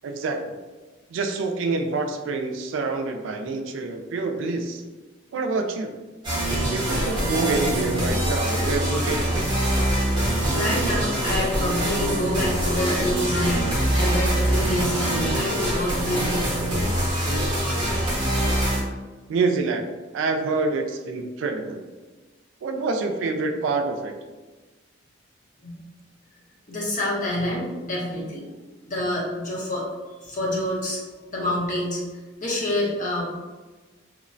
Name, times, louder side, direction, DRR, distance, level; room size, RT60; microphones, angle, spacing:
voice 1, 0.0-0.6 1.1-4.8 5.3-5.9 6.7-9.5 19.3-19.9 20.1-21.8 22.6-24.1, right 3 dB, 80° right, 5 dB, 0.3 m, -26 dB
sound 1, 6.2-18.8, right 1 dB, 25° right, 0.7 m, -24 dB
voice 2, 10.5-16.7 25.6-25.7 26.7-28.4 28.8-29.8 30.2-31.0 31.3-32.0 32.4-33.2, left 1 dB, 40° left, -4 dB, 0.6 m, -27 dB
2.8 x 2.0 x 2.5 m, 1.3 s
head